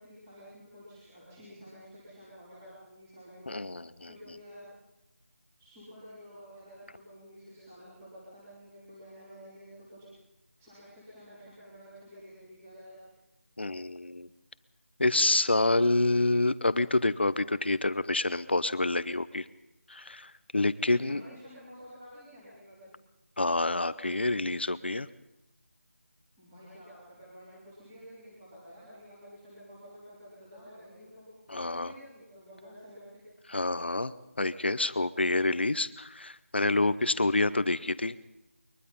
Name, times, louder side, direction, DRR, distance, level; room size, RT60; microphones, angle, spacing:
voice 1, 0.0-3.6 4.0-4.7 5.6-10.1 10.6-13.0 21.0-22.9 26.4-33.2, equal, 5° right, -9 dB, 3.5 m, -50 dB
voice 2, 3.5-4.1 13.6-14.3 15.0-19.4 19.9-21.2 23.4-25.1 31.5-31.9 33.5-38.2, left 2 dB, 45° left, 15 dB, 0.8 m, -28 dB
22.5 x 21.5 x 5.5 m, 0.91 s
figure-of-eight pair, 180°, 8 cm